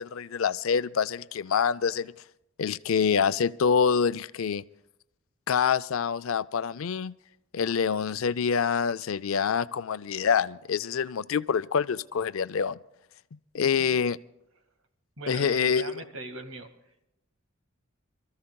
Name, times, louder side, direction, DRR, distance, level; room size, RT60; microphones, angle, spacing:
voice 1, 0.0-2.1 2.6-4.6 5.5-7.1 7.5-12.8 13.5-14.2 15.3-16.0, left 6 dB, 80° left, 16 dB, 0.5 m, -26 dB
voice 2, 15.2-16.7, right 2 dB, 80° right, 6 dB, 1.9 m, -40 dB
27.0 x 14.5 x 2.3 m, 0.84 s
head